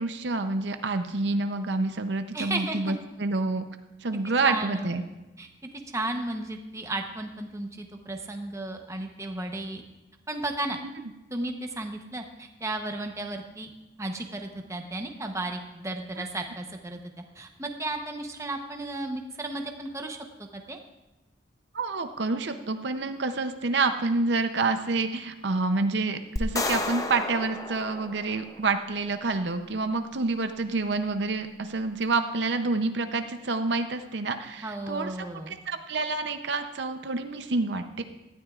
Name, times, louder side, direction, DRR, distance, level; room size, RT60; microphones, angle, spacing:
voice 1, 0.0-3.6 4.0-5.0 16.2-16.3 21.7-35.1 35.5-38.0, right 3 dB, 65° right, 8 dB, 0.6 m, -28 dB
voice 2, 2.3-3.0 4.4-5.0 5.4-5.5 5.9-9.8 10.3-10.8 11.3-13.7 14.0-17.0 17.3-20.2 20.5-20.8 34.6-35.5, right 2 dB, 15° right, 4 dB, 0.9 m, -34 dB
sound 1, 26.4-28.7, left 2 dB, 20° left, 0.6 m, -32 dB
18.0 x 13.0 x 2.4 m, 1.0 s
head